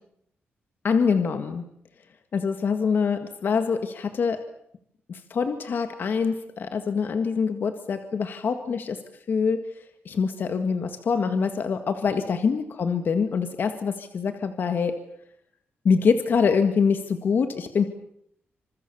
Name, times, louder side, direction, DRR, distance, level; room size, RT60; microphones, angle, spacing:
voice 1, 0.8-1.6 2.3-4.4 5.1-9.0 9.3-14.9 15.8-17.8, left 5 dB, 50° left, 8 dB, 1.8 m, -25 dB
28.0 x 26.5 x 7.0 m, 0.74 s
wide cardioid pair, 150°, 4 cm